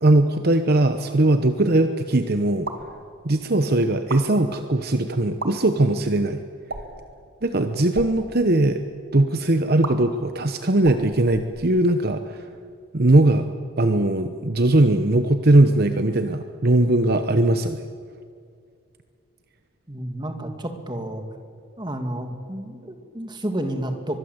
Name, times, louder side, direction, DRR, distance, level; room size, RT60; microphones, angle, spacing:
voice 1, 0.0-2.7 3.2-6.4 7.4-8.8 9.1-12.5 12.9-17.9, right 2 dB, 50° right, 8 dB, 0.9 m, -20 dB
sound 1, 2.6-2.9 3.9-4.2 5.3-5.5 6.7-7.0 7.8-8.1 9.8-9.9 10.8-12.0, right 3 dB, 65° right, 2.5 m, -34 dB
voice 2, 19.9-21.2 21.8-24.2, right 1 dB, 20° right, 5 dB, 2.3 m, -30 dB
24.0 x 21.5 x 8.0 m, 2.3 s
head